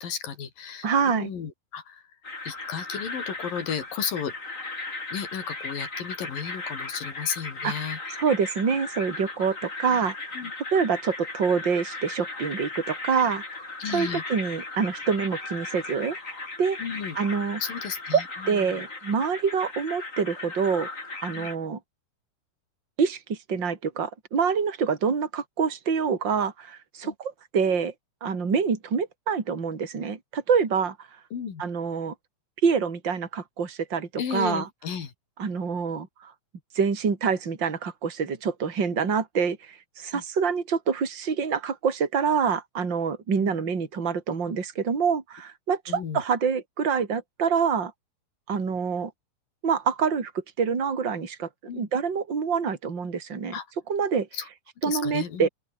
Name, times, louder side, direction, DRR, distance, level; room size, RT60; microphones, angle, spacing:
voice 1, 0.0-2.0 2.4-4.3 5.1-8.2 10.3-10.5 13.8-14.2 16.8-17.2 17.6-18.6 21.3-21.5 27.0-27.1 31.3-31.6 34.2-35.1 40.1-40.2 43.4-43.5 45.9-46.2 51.7-51.9 53.5-53.7 54.3-54.5 54.9-55.5, left 7 dB, 75° left, 5.0 m, -34 dB
voice 2, 0.8-1.3 7.6-7.8 8.2-10.2 10.7-13.4 13.9-16.2 16.6-16.8 17.2-17.6 18.1-20.9 21.2-21.8 23.0-27.9 28.2-31.0 31.6-32.1 32.6-34.7 35.4-36.3 36.7-47.9 48.5-49.1 49.6-53.6 53.9-54.3 54.8-55.5, right 6 dB, 30° right, 3.9 m, -26 dB
sound 1, 2.2-21.6, left 3 dB, 20° left, 3.9 m, -37 dB
open air
omnidirectional pair, 4.0 m